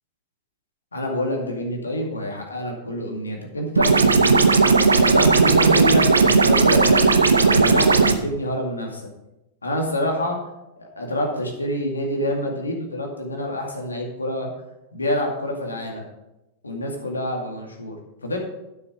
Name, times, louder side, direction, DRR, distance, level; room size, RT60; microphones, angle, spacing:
voice 1, 0.9-4.5 5.1-9.0 9.6-10.4 10.8-14.5 14.9-16.1 16.6-18.0 18.2-18.4, left 1 dB, 90° left, 1 dB, 2.2 m, -27 dB
sound 1, 3.8-8.2, right 4 dB, 90° right, 0.7 m, -16 dB
11.5 x 6.7 x 5.0 m, 0.93 s
hypercardioid pair, 95°, 0 cm